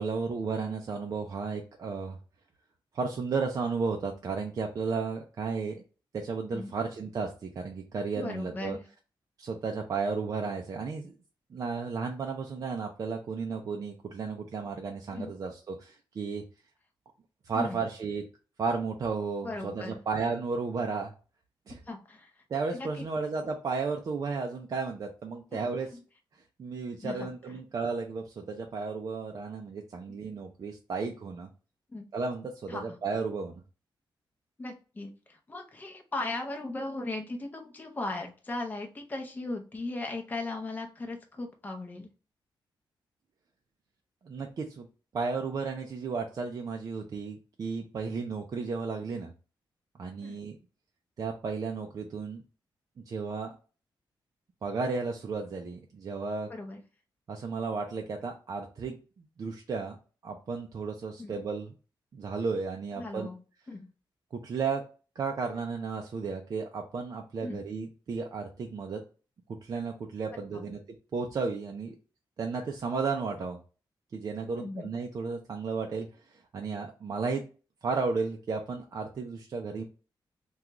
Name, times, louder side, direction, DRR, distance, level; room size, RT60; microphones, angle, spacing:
voice 1, 0.0-2.2 2.9-5.8 6.1-8.8 9.4-11.1 11.5-16.4 17.5-18.2 18.6-21.1 21.7-21.8 22.5-25.9 26.6-31.5 32.1-33.5 44.2-44.9 45.1-49.3 50.0-50.6 51.2-52.4 53.1-53.5 54.6-56.5 57.3-59.0 59.4-60.0 60.2-61.7 62.1-63.3 64.3-64.9 65.2-69.0 69.6-70.8 71.1-72.0 72.4-73.6 74.1-77.4 77.8-79.8, right 4 dB, 45° right, 2 dB, 0.4 m, -33 dB
voice 2, 8.2-8.8 15.1-15.3 17.5-17.8 19.4-20.0 21.8-22.3 22.7-23.1 25.5-25.6 25.9-26.0 27.0-27.3 30.1-30.2 31.9-32.1 32.7-33.0 34.6-42.1 50.2-50.4 56.5-56.8 61.2-61.3 63.0-63.4 63.7-63.8 67.4-67.6 70.5-70.7 74.6-74.9, left 2 dB, 20° left, 2 dB, 0.7 m, -37 dB
3.6 x 2.3 x 2.9 m, 0.36 s
wide cardioid pair, 160°, 9 cm